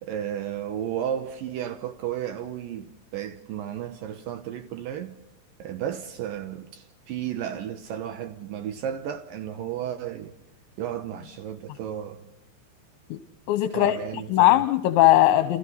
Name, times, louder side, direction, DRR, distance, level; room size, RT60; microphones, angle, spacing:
voice 1, 0.0-5.2 5.6-10.4 10.8-12.3 13.7-14.6, right 10 dB, 85° right, 1.9 m, -33 dB
voice 2, 13.5-15.6, left 15 dB, 80° left, 3.2 m, -20 dB
30.0 x 28.5 x 4.0 m
omnidirectional pair, 5.5 m